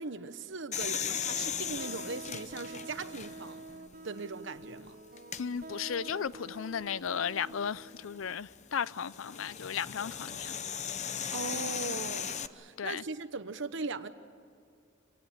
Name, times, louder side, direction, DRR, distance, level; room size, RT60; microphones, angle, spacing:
voice 1, 0.0-3.6 4.0-5.0 11.3-14.1, right 3 dB, 70° right, 1.1 m, -39 dB
sound 1, 0.7-3.6 4.2-4.3 5.2-5.4 7.6-12.5, left 8 dB, 35° left, 0.8 m, -37 dB
sound 2, 0.8-8.4, right 2 dB, 50° right, 1.4 m, -47 dB
voice 2, 5.4-10.6 12.8-13.0, left 7 dB, 85° left, 0.5 m, -35 dB
26.5 x 18.5 x 8.8 m
head